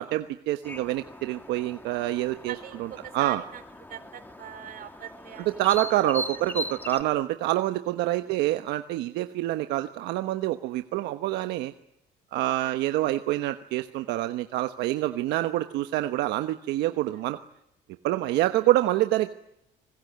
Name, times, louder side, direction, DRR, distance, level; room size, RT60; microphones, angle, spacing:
voice 1, 0.0-2.5 3.1-3.4 5.6-11.7 12.3-17.4 18.0-19.4, right 15 dB, 85° right, 8 dB, 1.1 m, -26 dB
sound 1, 0.6-7.0, left 1 dB, 10° left, 1.8 m, -40 dB
voice 2, 2.4-3.6 3.9-5.6 8.2-8.5 12.6-12.7 17.1-17.2 18.4-18.6, right 10 dB, 60° right, 9 dB, 4.6 m, -42 dB
25.0 x 21.0 x 9.4 m, 0.80 s
cardioid pair, 110°, 17 cm